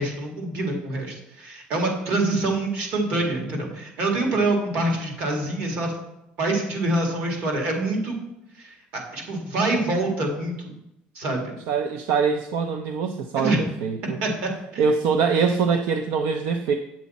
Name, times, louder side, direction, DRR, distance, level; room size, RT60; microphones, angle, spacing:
voice 1, 0.0-5.9 6.4-8.2 8.6-10.5 11.2-11.5 13.4-13.6 14.2-14.8, right 2 dB, 55° right, 2 dB, 1.9 m, -25 dB
voice 2, 11.7-14.2 14.8-16.8, right 5 dB, 75° right, 7 dB, 0.5 m, -23 dB
8.3 x 7.4 x 4.1 m, 0.84 s
cardioid pair, 170°, 4 cm